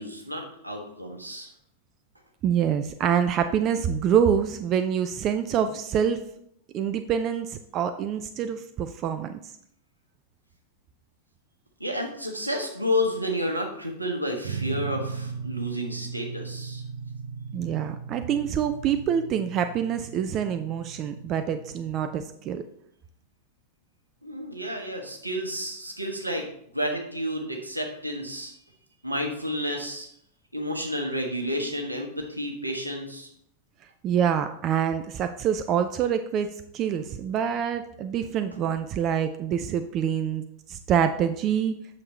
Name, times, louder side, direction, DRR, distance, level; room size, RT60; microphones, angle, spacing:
voice 1, 0.0-1.5 11.8-16.8 24.2-26.5 26.7-28.5 29.0-30.1 30.5-33.3, equal, 85° right, 2 dB, 1.4 m, -31 dB
voice 2, 2.4-6.2 6.7-9.5 17.5-22.6 34.0-41.7, right 8 dB, 35° right, 9 dB, 0.5 m, -26 dB
sound 1, 14.4-22.1, right 5 dB, 60° right, 0.9 m, -37 dB
8.4 x 6.6 x 3.2 m, 0.71 s
figure-of-eight pair, 90°, 0 cm